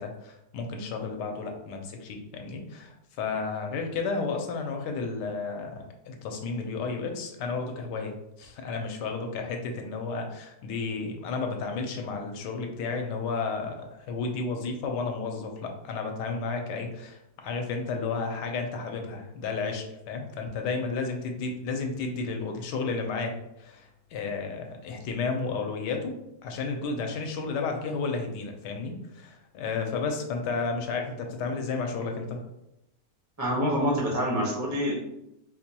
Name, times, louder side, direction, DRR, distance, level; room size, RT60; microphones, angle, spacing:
voice 1, 0.0-8.1 8.4-23.3 23.6-26.1 26.4-32.4, left 4 dB, 80° left, 3 dB, 1.2 m, -32 dB
voice 2, 33.4-34.9, equal, 20° right, -4 dB, 0.4 m, -26 dB
4.3 x 2.2 x 2.8 m, 0.86 s
omnidirectional pair, 1.8 m